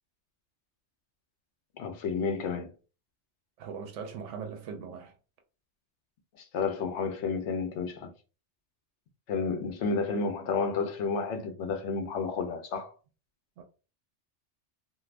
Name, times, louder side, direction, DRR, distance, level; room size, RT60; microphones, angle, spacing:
voice 1, 1.8-2.7 6.4-8.1 9.3-12.9, left 5 dB, 75° left, 0.9 m, -31 dB
voice 2, 3.6-5.1 13.6-13.7, right 6 dB, 85° right, 0.9 m, -40 dB
2.5 x 2.4 x 3.2 m
omnidirectional pair, 1.2 m